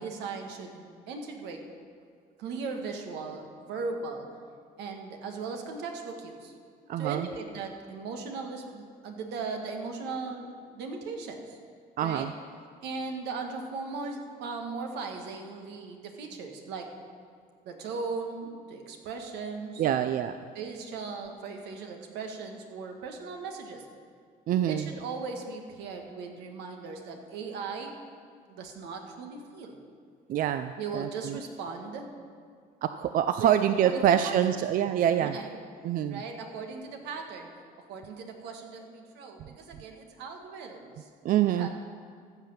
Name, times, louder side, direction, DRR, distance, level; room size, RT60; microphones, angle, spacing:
voice 1, 0.0-1.6 2.4-4.3 4.8-6.5 7.0-11.6 12.0-12.3 12.8-16.9 17.6-19.9 20.5-23.9 24.7-28.0 28.5-29.8 30.8-32.1 33.4-33.6 33.8-34.6 35.2-35.6 36.1-37.5 37.9-41.1 41.5-41.7, right 4 dB, 85° right, 3 dB, 1.5 m, -38 dB
voice 2, 6.9-7.3 12.0-12.3 19.8-20.4 24.5-24.9 30.3-31.4 32.8-35.4 35.8-36.2 41.2-41.7, right 10 dB, 55° right, 10 dB, 0.4 m, -25 dB
14.5 x 5.8 x 7.2 m, 2.1 s
cardioid pair, 110°, 17 cm